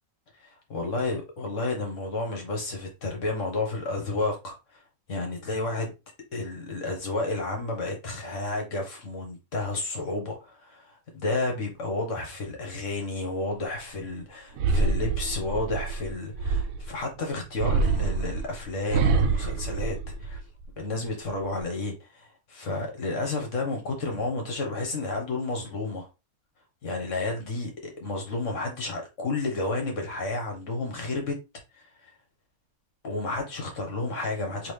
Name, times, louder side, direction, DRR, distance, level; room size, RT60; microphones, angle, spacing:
voice 1, 0.4-4.6 5.1-5.9 6.3-20.4 20.8-26.1 26.8-31.4 33.0-34.7, left 2 dB, 60° left, 1.6 m, -31 dB
sound 1, 14.6-17.0 17.6-20.6 21.1-21.6, right 4 dB, 75° right, 1.0 m, -26 dB
3.8 x 3.0 x 3.2 m
omnidirectional pair, 1.5 m